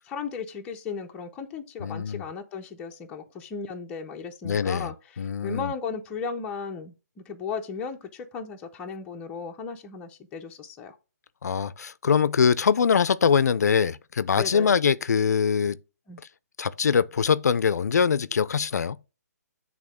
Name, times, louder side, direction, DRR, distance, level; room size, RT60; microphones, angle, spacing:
voice 1, 0.1-10.9 14.4-14.8 16.1-16.2, left 5 dB, 10° left, 0.6 m, -36 dB
voice 2, 1.8-2.2 4.4-4.9 5.2-5.7 11.4-15.8 16.6-19.0, left 6 dB, 70° left, 0.5 m, -23 dB
8.6 x 3.6 x 4.9 m
hypercardioid pair, 165°, 9 cm